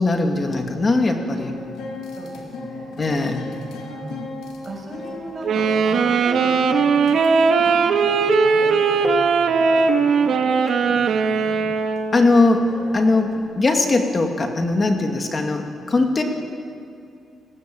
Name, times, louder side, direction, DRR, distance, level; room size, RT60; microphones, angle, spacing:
voice 1, 0.0-1.5 3.0-3.5 12.1-16.2, left 2 dB, 25° left, 4 dB, 2.3 m, -20 dB
sound 1, 1.4-13.4, left 3 dB, 85° left, 4.3 m, -38 dB
voice 2, 2.1-3.0 3.8-11.7, right 2 dB, 30° right, 1 dB, 5.9 m, -37 dB
Wind instrument woodwind instrument, 5.4-12.3, right 5 dB, 55° right, 1.7 m, -19 dB
28.5 x 19.0 x 9.0 m, 2.4 s
cardioid pair, 160°, 0 cm